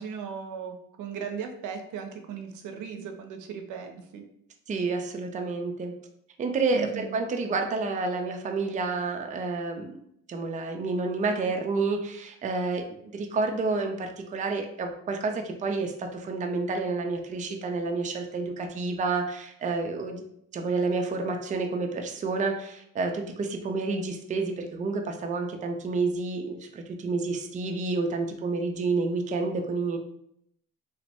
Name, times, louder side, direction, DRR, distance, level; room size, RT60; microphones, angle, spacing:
voice 1, 0.0-4.2 6.7-7.2, right 6 dB, 80° right, 5 dB, 0.5 m, -37 dB
voice 2, 4.7-5.9 6.4-10.0 10.3-12.8 13.1-20.2 20.5-30.0, right 3 dB, 25° right, 4 dB, 0.4 m, -29 dB
2.9 x 2.1 x 2.8 m, 0.72 s
cardioid pair, 90°, 30 cm